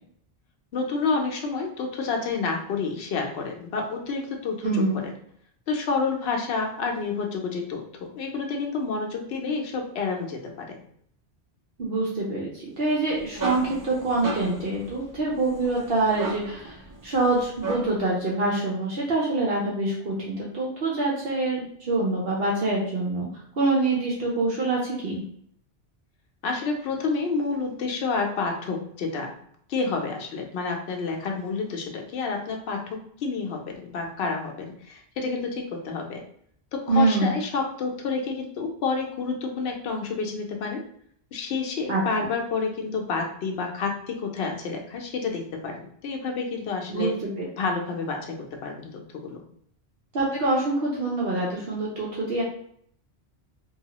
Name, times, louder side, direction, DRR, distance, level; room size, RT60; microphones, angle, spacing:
voice 1, 0.7-5.1 5.7-10.7 26.4-29.3 29.7-36.2 36.7-40.8 41.3-47.1 47.6-49.4, left 4 dB, 75° left, 1 dB, 0.8 m, -29 dB
voice 2, 4.6-5.0 11.8-16.8 17.0-23.3 23.6-25.2 36.9-37.4 41.9-42.0 46.9-47.4 50.1-52.4, right 2 dB, 65° right, -4 dB, 0.9 m, -25 dB
sound 1, 12.9-18.1, right 3 dB, 35° right, 0.3 m, -36 dB
2.7 x 2.3 x 2.9 m, 0.65 s
omnidirectional pair, 1.1 m